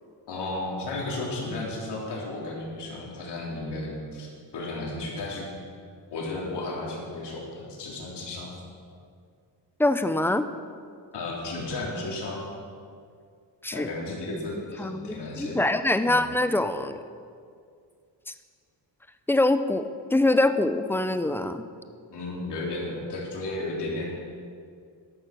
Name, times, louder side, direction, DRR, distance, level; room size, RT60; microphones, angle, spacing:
voice 1, 0.3-5.5 6.1-8.5 11.1-12.4 13.7-15.7 16.0-16.2 22.1-24.1, left 2 dB, 65° left, -2 dB, 3.5 m, -34 dB
voice 2, 9.8-10.5 13.6-13.9 14.3-14.4 14.8-17.0 19.3-21.7, left 2 dB, 5° left, 10 dB, 0.4 m, -24 dB
13.0 x 11.5 x 6.0 m, 2.2 s
wide cardioid pair, 170°, 43 cm